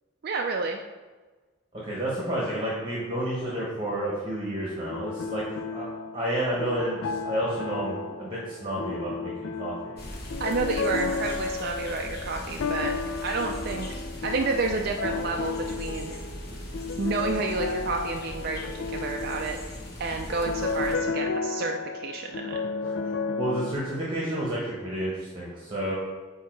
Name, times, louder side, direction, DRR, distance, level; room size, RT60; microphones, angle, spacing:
voice 1, 0.2-0.8 10.4-12.9 13.2-13.9 14.2-16.1 17.0-19.6 20.0-22.6, right 3 dB, 50° right, 2 dB, 0.4 m, -30 dB
voice 2, 1.7-5.4 5.7-5.9 6.1-9.9 22.8-22.9 23.4-26.0, right 1 dB, 25° right, -6 dB, 1.1 m, -30 dB
sound 1, 4.7-23.7, left 4 dB, 70° left, 0.4 m, -33 dB
sound 2, 10.0-21.0, left 1 dB, 50° left, 0.9 m, -39 dB
8.2 x 2.8 x 4.5 m, 1.3 s
head